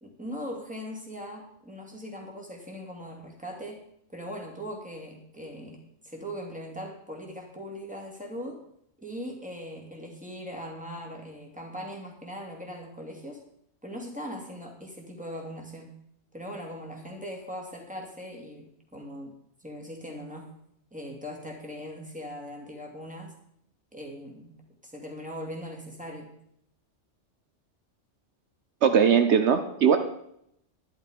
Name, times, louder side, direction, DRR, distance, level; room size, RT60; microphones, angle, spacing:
voice 1, 0.0-3.8 4.1-8.6 9.0-13.4 13.8-15.9 16.3-19.3 19.6-20.5 20.9-23.3 23.9-24.5 24.8-26.3, equal, 5° right, 0 dB, 2.7 m, -40 dB
voice 2, 28.8-30.0, right 7 dB, 70° right, 8 dB, 1.1 m, -20 dB
12.0 x 11.0 x 5.2 m, 0.74 s
omnidirectional pair, 1.2 m